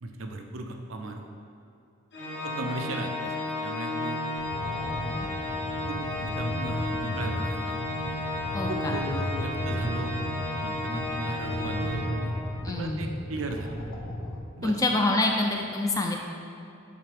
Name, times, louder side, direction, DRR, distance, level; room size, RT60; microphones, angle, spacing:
voice 1, 0.0-1.2 2.4-4.2 5.9-7.7 8.7-10.3 10.6-12.3 12.7-13.7 14.6-14.7, right 2 dB, 80° right, 4 dB, 0.5 m, -37 dB
Organ, 2.1-12.7, left 1 dB, 60° left, 1.1 m, -33 dB
sound 1, 4.4-14.4, left 1 dB, 90° left, 0.7 m, -35 dB
voice 2, 8.5-8.9 12.6-13.1 14.6-16.2, left 2 dB, 15° left, 2 dB, 0.3 m, -26 dB
8.5 x 3.3 x 3.4 m, 2.6 s
head